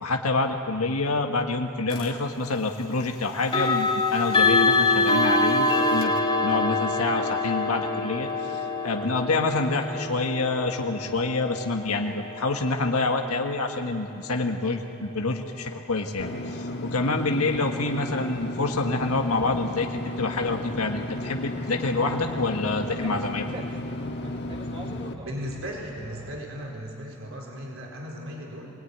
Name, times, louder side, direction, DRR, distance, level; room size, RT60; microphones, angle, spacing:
voice 1, 0.0-6.1 6.4-23.5, left 3 dB, 85° left, 3 dB, 1.6 m, -27 dB
sound 1, 1.9-2.1 3.4-14.3, left 3 dB, 25° left, 2.5 m, -26 dB
Engine / Mechanisms, 16.2-25.1, left 1 dB, 50° left, 1.5 m, -34 dB
sound 2, 18.6-26.4, right 1 dB, 20° right, 1.8 m, -45 dB
voice 2, 25.2-28.7, equal, 60° right, -1 dB, 4.3 m, -36 dB
25.0 x 19.5 x 9.6 m, 2.8 s
head